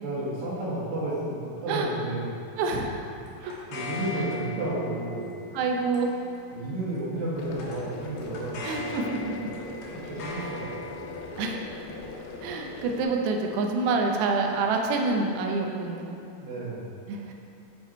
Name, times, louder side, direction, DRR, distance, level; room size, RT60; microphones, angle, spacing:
voice 1, 0.0-2.3 3.4-5.3 6.5-8.7 9.5-10.6 16.4-16.9, right 1 dB, 60° right, -9 dB, 3.4 m, -32 dB
voice 2, 2.6-2.9 3.4-3.5 5.5-6.1 8.6-9.5 11.4-11.6 12.4-16.2 17.1-17.3, right 3 dB, 80° right, 2 dB, 2.8 m, -27 dB
sound 1, 2.7-15.3, left 1 dB, 65° left, 2.0 m, -42 dB
sound 2, 7.4-13.0, left 3 dB, 85° left, 2.8 m, -41 dB
9.0 x 4.8 x 4.4 m, 2.6 s
omnidirectional pair, 5.0 m